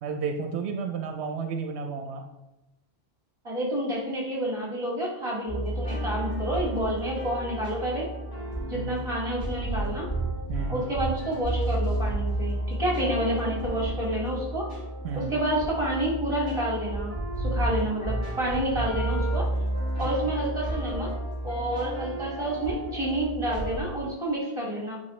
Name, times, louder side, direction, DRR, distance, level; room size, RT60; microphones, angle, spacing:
voice 1, 0.0-2.2 8.7-9.0 10.5-10.8 15.0-15.3, right 5 dB, 85° right, 5 dB, 0.9 m, -32 dB
voice 2, 3.4-8.1 8.7-10.1 10.7-14.7 15.1-19.5 20.0-21.1 21.4-25.0, right 1 dB, 25° right, -4 dB, 2.1 m, -29 dB
sound 1, 5.5-23.8, right 1 dB, 75° left, 2.5 m, -31 dB
8.6 x 4.5 x 3.1 m, 0.98 s
omnidirectional pair, 1.1 m